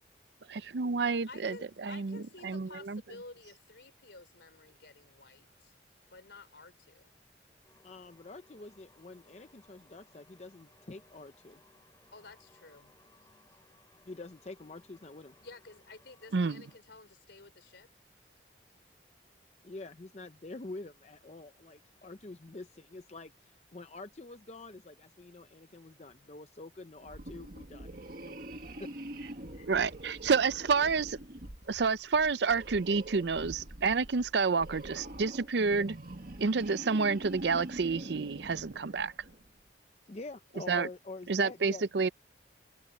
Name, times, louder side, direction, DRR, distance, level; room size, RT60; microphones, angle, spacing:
voice 1, 0.5-3.0 16.3-16.6 29.7-31.2 31.7-36.0 36.4-39.1 40.7-40.9 41.3-42.1, right 4 dB, 70° right, 0.5 m, -29 dB
voice 2, 1.3-5.7 6.1-7.1 12.1-12.9 15.4-17.9, left 3 dB, 70° left, 3.4 m, -52 dB
sound 1, 7.6-16.8, left 2 dB, 20° left, 3.3 m, -64 dB
voice 3, 7.8-11.6 14.1-15.3 19.6-27.9 28.2-29.0 29.5-29.7 30.0-30.1 40.1-41.8, left 2 dB, 35° left, 0.6 m, -47 dB
sound 2, 27.0-39.5, right 1 dB, 50° right, 2.0 m, -45 dB
head